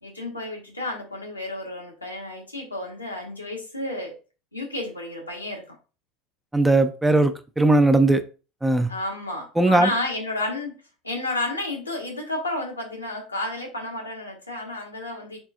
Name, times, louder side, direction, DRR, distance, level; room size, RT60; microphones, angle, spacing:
voice 1, 0.0-4.1 4.5-5.8 8.9-10.8 11.0-15.4, left 2 dB, 90° left, 1.1 m, -31 dB
voice 2, 6.5-8.2 8.6-8.9 9.6-9.9, right 2 dB, 10° right, 0.5 m, -18 dB
4.3 x 3.9 x 2.4 m
figure-of-eight pair, 75°, 0 cm